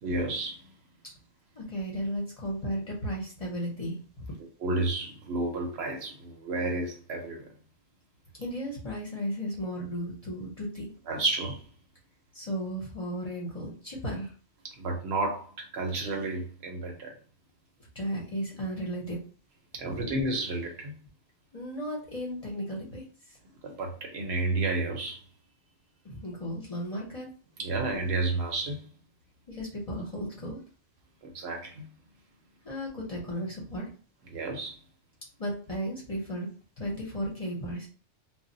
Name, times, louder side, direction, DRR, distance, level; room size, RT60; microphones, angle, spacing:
voice 1, 0.0-0.7 4.4-7.5 11.1-11.6 14.8-17.1 19.7-21.0 23.6-25.2 27.6-28.9 31.2-31.9 34.3-34.8, right 2 dB, 65° right, 0.8 m, -31 dB
voice 2, 1.6-4.0 8.4-10.9 12.3-14.3 17.9-19.2 19.8-20.0 21.5-23.0 26.0-27.3 29.5-30.6 32.6-33.9 35.4-36.5 36.8-37.9, equal, 35° left, 0.7 m, -34 dB
2.1 x 2.0 x 3.7 m
omnidirectional pair, 1.3 m